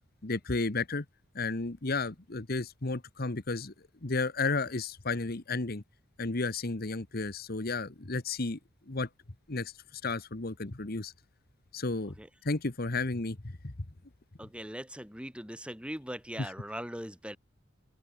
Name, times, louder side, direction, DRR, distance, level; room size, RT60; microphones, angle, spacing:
voice 1, 0.2-1.0 1.3-3.7 4.0-5.8 6.2-8.6 8.9-9.1 9.5-11.1 11.7-12.1 12.4-13.4 13.6-13.7 16.4-16.5, left 3 dB, 50° left, 1.3 m, -32 dB
voice 2, 14.4-17.4, equal, 5° right, 5.4 m, -40 dB
open air
head